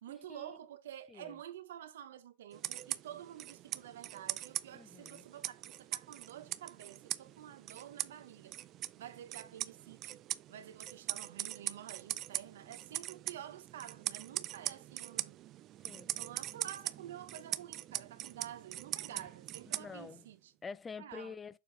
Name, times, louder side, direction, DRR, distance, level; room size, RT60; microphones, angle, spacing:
voice 1, 0.0-8.6 9.0-10.2 10.5-15.4 16.1-20.5 21.0-21.3, right 11 dB, 75° right, 0.9 m, -49 dB
sound 1, 2.5-20.3, right 13 dB, 40° right, 0.4 m, -42 dB
voice 2, 4.7-5.3 15.8-16.1 19.1-19.2 19.7-20.2 20.6-21.6, left 5 dB, 20° left, 0.4 m, -47 dB
6.9 x 4.7 x 3.4 m
hypercardioid pair, 110°, 0 cm